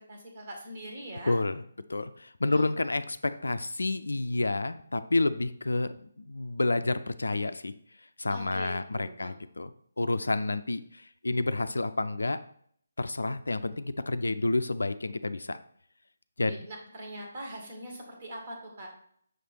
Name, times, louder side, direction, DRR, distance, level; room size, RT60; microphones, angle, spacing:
voice 1, 0.1-1.3 2.5-2.7 8.3-9.3 16.4-18.9, right 1 dB, 40° right, 0 dB, 1.8 m, -42 dB
voice 2, 1.3-1.6 1.9-7.7 8.2-12.4 13.0-15.6 16.4-16.7, left 2 dB, 75° left, 13 dB, 0.4 m, -29 dB
6.5 x 3.3 x 4.4 m, 0.62 s
figure-of-eight pair, 145°, 0 cm